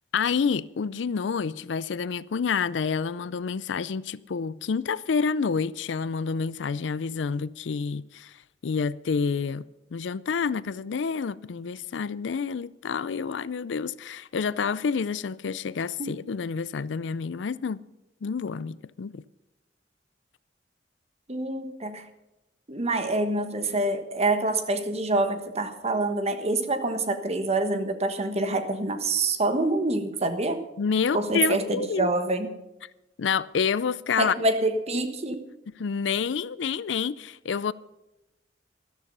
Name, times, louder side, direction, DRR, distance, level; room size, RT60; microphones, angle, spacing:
voice 1, 0.1-8.3 8.6-9.6 9.9-17.8 18.2-19.2 30.8-32.1 33.2-34.3 35.8-37.7, left 5 dB, 75° left, 0.4 m, -28 dB
voice 2, 21.3-22.0 22.7-30.6 31.1-32.5 34.2-35.5, right 2 dB, 35° right, 1.3 m, -26 dB
13.5 x 13.0 x 5.5 m
head